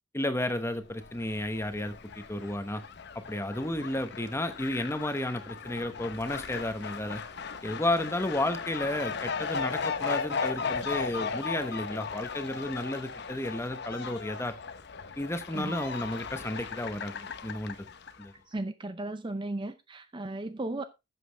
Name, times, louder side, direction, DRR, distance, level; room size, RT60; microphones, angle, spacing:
voice 1, 0.1-2.8 3.3-7.2 7.6-14.6 15.2-17.8 18.2-18.3, left 1 dB, 15° left, 1.0 m, -32 dB
Fowl, 0.9-18.3, left 5 dB, 55° left, 0.8 m, -37 dB
voice 2, 18.5-20.8, right 2 dB, 25° right, 0.5 m, -35 dB
11.5 x 7.7 x 3.4 m
head